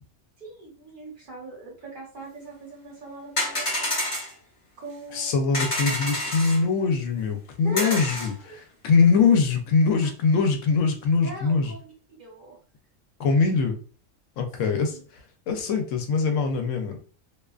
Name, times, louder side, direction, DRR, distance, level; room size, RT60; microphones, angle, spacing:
voice 1, 0.4-4.0 4.8-5.3 7.6-8.0 8.4-8.6 11.2-11.9 12.2-12.6 14.7-15.0, right 2 dB, 45° right, -3 dB, 0.9 m, -41 dB
sound 1, 3.4-4.3 5.5-6.6 7.8-8.3, left 1 dB, 30° left, 0.7 m, -28 dB
voice 2, 5.1-8.3 8.8-11.7 13.2-13.8 14.4-14.9 15.5-17.0, left 4 dB, 75° left, 5 dB, 0.9 m, -22 dB
2.4 x 2.3 x 2.3 m, 0.39 s
omnidirectional pair, 1.3 m